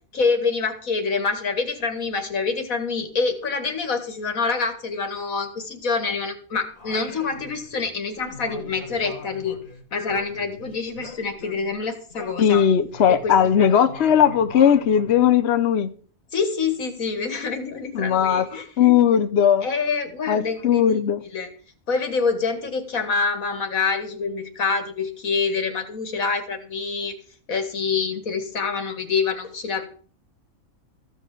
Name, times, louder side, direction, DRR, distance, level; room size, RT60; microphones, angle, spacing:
voice 1, 0.1-9.6 9.9-12.6 13.1-13.7 16.3-18.9 19.6-21.0 21.2-21.5 21.9-27.2 27.5-29.8, left 4 dB, 80° left, 2.3 m, -26 dB
Singing, 6.7-7.9 8.2-11.8 12.1-15.3, left 3 dB, 35° left, 1.9 m, -41 dB
voice 2, 12.4-15.9 17.9-18.5 18.8-19.7 20.3-21.2, left 8 dB, 55° left, 0.9 m, -18 dB
14.5 x 5.8 x 7.6 m
omnidirectional pair, 1.4 m